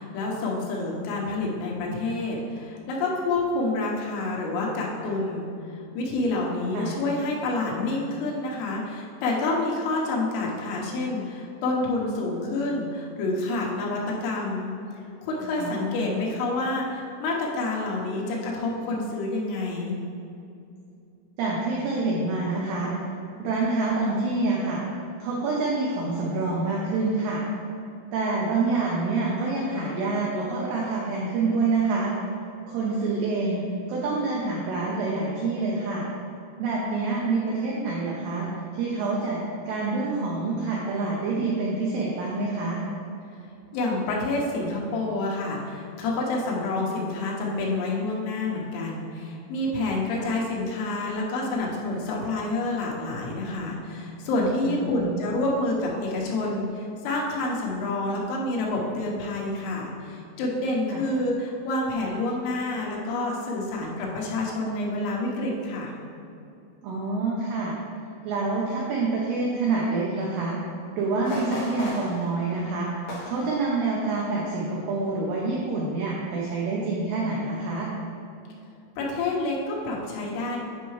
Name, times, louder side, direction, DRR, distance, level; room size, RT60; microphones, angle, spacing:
voice 1, 0.0-14.7 15.2-20.0 43.7-65.9 79.0-80.6, left 2 dB, 85° left, -2 dB, 3.7 m, -28 dB
voice 2, 15.6-16.0 21.4-22.9 23.4-24.8 25.2-27.4 28.1-32.1 32.7-33.6 33.9-36.1 36.6-38.5 38.7-39.4 39.7-42.8 50.2-50.3 54.7-55.1 60.9-61.0 66.8-67.8 68.2-70.6 71.0-72.9 73.2-77.9, right 3 dB, 85° right, -4 dB, 2.3 m, -27 dB
sound 1, 71.2-74.3 74.6-74.9 75.3-75.7 76.1-76.2, left 1 dB, 60° left, 2.5 m, -38 dB
9.6 x 5.5 x 3.1 m, 2.6 s
omnidirectional pair, 5.8 m